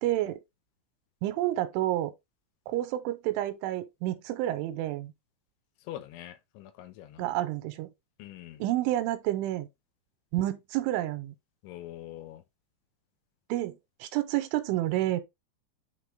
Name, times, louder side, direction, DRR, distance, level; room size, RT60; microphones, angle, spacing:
voice 1, 0.0-0.4 1.2-2.1 2.7-5.1 7.2-7.9 8.6-9.7 10.3-11.3 13.5-15.2, right 14 dB, 85° right, 3.3 m, -29 dB
voice 2, 5.8-7.4 8.2-8.6 11.6-12.4, left 13 dB, 80° left, 3.2 m, -44 dB
8.9 x 3.9 x 3.7 m
omnidirectional pair, 5.6 m